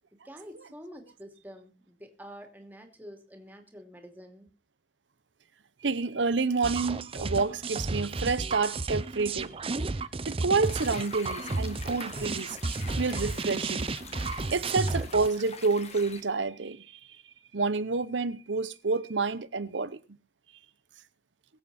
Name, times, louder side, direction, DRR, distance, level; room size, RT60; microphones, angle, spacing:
voice 1, 0.2-4.5, equal, 10° right, 2.8 m, -47 dB
voice 2, 5.8-9.5 10.3-12.6 13.0-13.9 14.5-16.8 17.5-20.0, right 4 dB, 85° right, 0.9 m, -28 dB
sound 1, 6.6-15.3, right 3 dB, 30° right, 0.6 m, -33 dB
sound 2, 10.6-16.2, left 4 dB, 35° left, 1.8 m, -45 dB
22.0 x 8.0 x 4.3 m
head